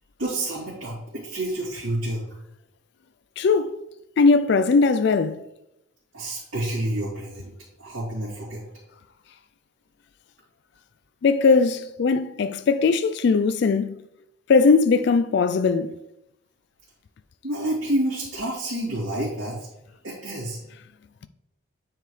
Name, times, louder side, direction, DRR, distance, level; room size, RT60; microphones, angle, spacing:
voice 1, 0.2-2.2 6.1-7.5 7.8-8.6 17.4-19.7 20.0-20.6, right 1 dB, 75° right, 2.8 m, -29 dB
voice 2, 3.4-3.8 4.2-5.4 11.2-13.9 14.5-15.9, left 4 dB, 55° left, 0.3 m, -19 dB
9.2 x 4.8 x 3.2 m
head